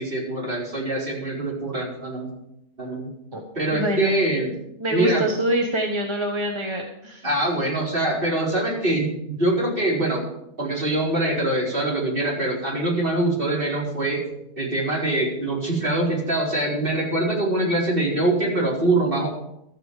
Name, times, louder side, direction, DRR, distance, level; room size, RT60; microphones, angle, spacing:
voice 1, 0.0-2.3 2.8-3.1 3.5-4.5 4.9-5.3 7.2-10.2 10.6-14.2 14.6-19.3, right 1 dB, 45° right, -4 dB, 4.6 m, -24 dB
voice 2, 3.7-4.2 4.8-7.2, right 1 dB, 25° right, 2 dB, 1.3 m, -25 dB
13.5 x 8.2 x 7.5 m, 0.80 s
omnidirectional pair, 1.3 m